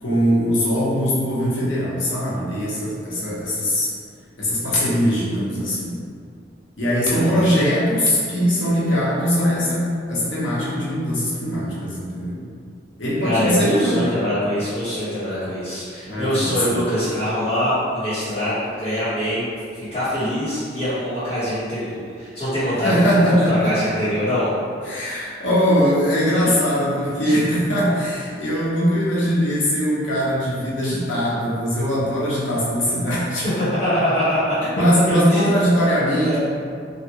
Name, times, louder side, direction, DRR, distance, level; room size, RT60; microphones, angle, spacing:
voice 1, 0.0-3.9 4.4-5.9 6.8-12.4 13.0-14.1 16.1-16.8 22.8-23.8 24.8-33.4 34.8-36.4, equal, 80° left, -7 dB, 0.9 m, -21 dB
voice 2, 7.1-7.4 13.2-19.5 19.8-23.0 23.5-24.5 27.2-27.3 33.6-34.8 35.1-35.4 36.2-36.4, equal, 35° left, -15 dB, 1.2 m, -24 dB
3.1 x 2.4 x 2.9 m, 2.3 s
head